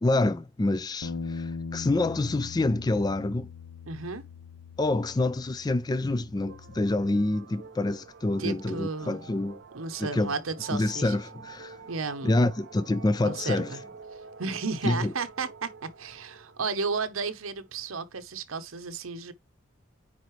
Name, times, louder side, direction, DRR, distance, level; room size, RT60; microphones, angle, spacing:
voice 1, 0.0-3.5 4.8-9.6 10.0-10.3 10.7-11.8 12.2-13.8 14.8-15.1, left 2 dB, 20° left, 0.3 m, -27 dB
Bass guitar, 1.0-7.3, left 4 dB, 85° left, 0.9 m, -41 dB
voice 2, 3.9-4.2 8.4-9.2 9.7-11.1 11.9-12.3 13.2-13.8 14.4-19.3, right 4 dB, 75° right, 0.9 m, -33 dB
sound 1, 6.4-18.3, right 4 dB, 55° right, 0.5 m, -48 dB
9.4 x 4.0 x 3.1 m
head